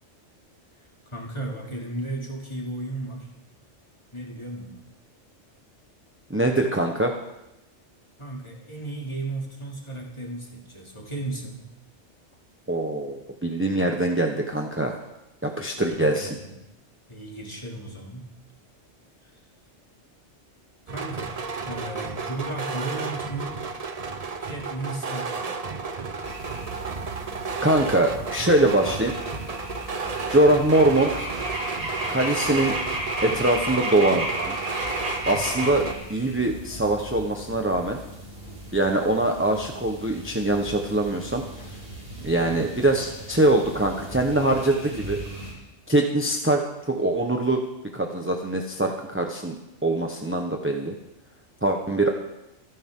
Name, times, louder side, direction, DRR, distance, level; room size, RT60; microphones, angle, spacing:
voice 1, 1.1-3.3 4.1-4.8 8.2-11.6 15.6-16.6 17.1-18.3 19.2-19.3 20.9-21.4 21.6-23.6 24.4-25.5 42.0-42.3, right 2 dB, 25° left, -2 dB, 2.9 m, -35 dB
voice 2, 6.3-7.2 12.7-15.0 15.4-16.3 27.6-29.2 30.3-31.3 32.1-32.8 33.2-34.5 35.3-38.0 38.7-41.4 42.2-45.2 45.9-47.6 47.9-49.6 49.8-50.9 51.6-52.1, right 1 dB, 10° right, 1 dB, 1.2 m, -23 dB
sound 1, 20.9-35.9, right 4 dB, 35° right, 0.9 m, -32 dB
sound 2, 26.2-45.5, right 1 dB, 65° right, 5.7 m, -35 dB
26.5 x 10.5 x 3.8 m, 0.90 s
omnidirectional pair, 1.2 m